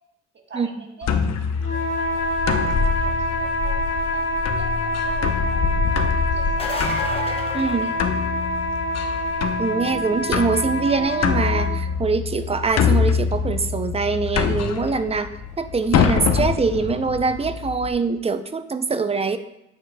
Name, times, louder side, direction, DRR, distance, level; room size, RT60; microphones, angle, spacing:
voice 1, 0.3-1.1 1.7-2.3 2.8-4.2 4.5-6.8 7.8-8.0, right 3 dB, 35° right, 1 dB, 1.5 m, -43 dB
sound 1, 1.0-17.9, left 6 dB, 60° left, 0.8 m, -25 dB
sound 2, 1.6-11.8, equal, 40° left, 2.3 m, -26 dB
sound 3, 6.4-8.7 14.2-14.3 16.1-16.2, left 2 dB, 20° left, 1.2 m, -32 dB
voice 2, 7.5-7.9 9.6-15.3 15.6-19.4, right 4 dB, 20° right, 10 dB, 0.5 m, -23 dB
9.3 x 7.2 x 2.3 m, 0.85 s
cardioid pair, 90°, 30 cm